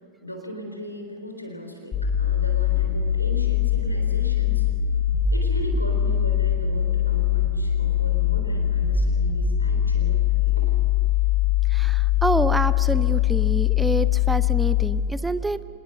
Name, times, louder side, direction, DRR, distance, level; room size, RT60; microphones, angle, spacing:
voice 1, 0.2-4.6 5.3-10.7, equal, 85° left, 4 dB, 3.8 m, -37 dB
sound 1, 1.9-14.9, left 10 dB, 25° left, 6.4 m, -22 dB
voice 2, 11.7-15.6, right 2 dB, 10° right, 15 dB, 0.6 m, -27 dB
26.0 x 20.0 x 6.8 m, 2.5 s
figure-of-eight pair, 90°, 0 cm